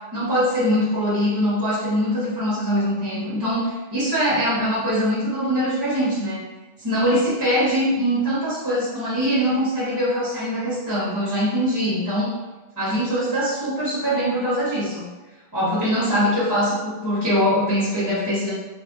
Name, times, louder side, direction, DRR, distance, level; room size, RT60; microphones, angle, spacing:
voice 1, 0.1-6.4 6.8-12.3 12.8-15.1 15.5-18.5, equal, 20° right, -8 dB, 0.9 m, -22 dB
3.3 x 2.7 x 2.3 m, 1.2 s
omnidirectional pair, 1.1 m